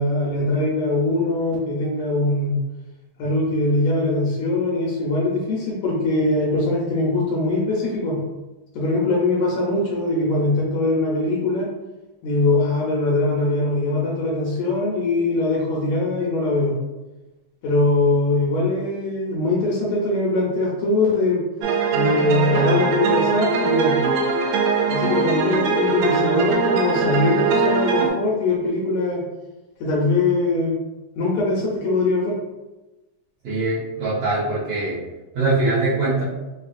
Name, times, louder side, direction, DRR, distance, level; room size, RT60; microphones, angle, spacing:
voice 1, 0.0-2.6 3.2-8.2 8.7-11.7 12.2-16.7 17.6-21.4 21.9-24.0 24.9-29.2 29.8-30.8 31.2-32.3, left 2 dB, 75° left, -4 dB, 1.8 m, -21 dB
sound 1, 21.6-28.1, right 4 dB, 85° right, 1.6 m, -21 dB
voice 2, 33.4-35.0 35.3-36.2, right 2 dB, 65° right, -10 dB, 1.6 m, -22 dB
5.5 x 2.4 x 2.5 m, 1.1 s
omnidirectional pair, 3.8 m